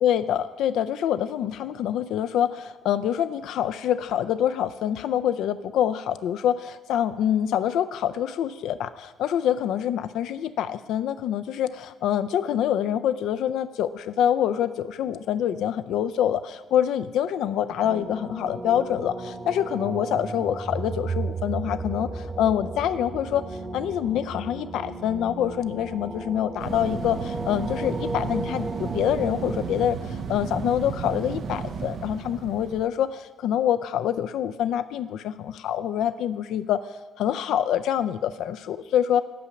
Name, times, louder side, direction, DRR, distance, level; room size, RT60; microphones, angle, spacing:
voice 1, 0.0-23.4 23.7-36.8 37.2-39.2, left 10 dB, 85° left, 12 dB, 0.3 m, -26 dB
sound 1, 17.8-29.9, right 3 dB, 25° right, 1.0 m, -34 dB
sound 2, 26.6-32.9, right 5 dB, 65° right, 0.6 m, -33 dB
8.4 x 5.7 x 7.1 m, 1.2 s
cardioid pair, 80°, 0 cm